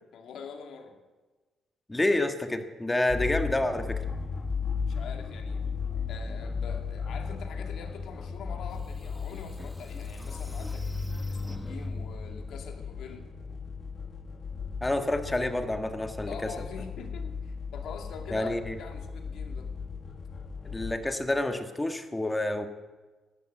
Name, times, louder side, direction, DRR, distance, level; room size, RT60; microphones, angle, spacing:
voice 1, 0.1-1.0 4.9-5.6 6.1-10.9 11.3-13.3 16.3-19.7, left 6 dB, 70° left, 4 dB, 2.3 m, -44 dB
voice 2, 1.9-4.0 14.8-16.3 18.3-18.8 20.6-22.7, left 1 dB, 15° left, 7 dB, 1.5 m, -28 dB
sound 1, 3.1-20.9, left 5 dB, 40° left, 1.9 m, -36 dB
sound 2, 8.5-8.6 9.1-12.3, left 1 dB, 5° right, 1.2 m, -39 dB
13.5 x 11.0 x 8.6 m, 1.3 s
cardioid pair, 90°, 0 cm